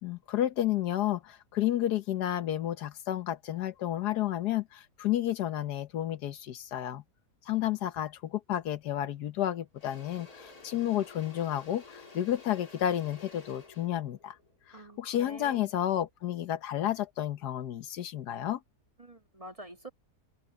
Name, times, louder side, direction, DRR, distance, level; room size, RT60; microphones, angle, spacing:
voice 1, 0.0-7.0 7.5-14.4 14.7-18.6, left 12 dB, 90° left, 1.5 m, -31 dB
Engine / Drill, 8.9-9.1 9.4-15.6, left 3 dB, 70° left, 3.5 m, -52 dB
voice 2, 14.7-15.7 19.0-19.9, right 1 dB, 20° right, 2.0 m, -47 dB
omnidirectional pair, 1.7 m